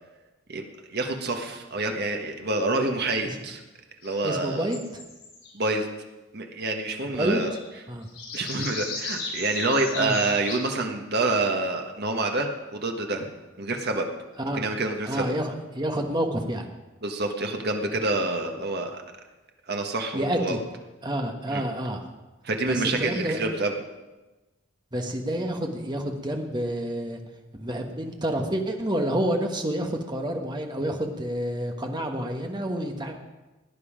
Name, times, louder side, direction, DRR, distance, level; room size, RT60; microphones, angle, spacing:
voice 1, 0.9-3.6 4.0-4.7 5.5-5.9 6.3-7.5 8.3-13.3 13.6-14.1 14.5-15.3 17.0-19.0 19.7-20.6 21.5-21.6 22.4-23.8, right 2 dB, 50° right, 4 dB, 1.4 m, -27 dB
sound 1, 4.0-5.6 7.1-7.8 8.0-10.6, left 4 dB, 70° left, 4.6 m, -36 dB
voice 2, 4.2-5.0 7.0-7.4 7.9-8.1 9.9-10.2 14.4-14.7 15.0-16.7 20.1-20.6 21.0-22.0 22.7-23.4 24.9-27.2 27.5-33.1, right 1 dB, 20° right, 3 dB, 1.3 m, -29 dB
17.5 x 9.5 x 5.1 m, 1.1 s
head